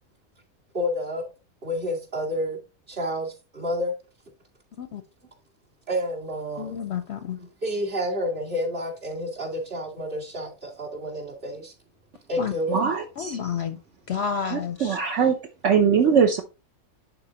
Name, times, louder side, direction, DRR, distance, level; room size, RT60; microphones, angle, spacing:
voice 1, 0.7-1.2 1.6-2.6 2.9-3.9 5.9-6.8 7.4-11.7 12.3-12.8 13.4-13.6 16.0-16.1, left 1 dB, 40° right, 2.5 m, -29 dB
voice 2, 6.6-7.4 12.4-12.5 13.2-13.8 14.1-15.0, left 7 dB, 60° left, 0.8 m, -30 dB
voice 3, 12.7-13.4 14.5-15.4 15.6-16.4, right 6 dB, 60° right, 1.0 m, -21 dB
11.0 x 4.4 x 2.9 m
omnidirectional pair, 1.5 m